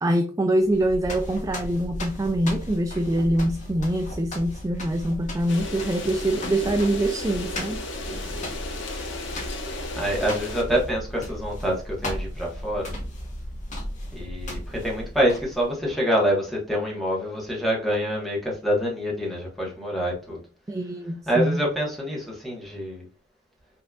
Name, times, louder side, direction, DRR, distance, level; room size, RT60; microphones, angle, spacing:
voice 1, 0.0-7.8 20.7-21.6, right 1 dB, 15° right, 0.3 m, -24 dB
sound 1, 0.6-15.7, left 1 dB, 40° left, 1.2 m, -35 dB
sound 2, 5.5-10.6, left 2 dB, 65° left, 1.0 m, -35 dB
voice 2, 8.1-8.4 9.9-12.9 14.1-20.4 21.3-23.0, equal, ahead, 1.5 m, -26 dB
5.7 x 3.4 x 2.5 m
head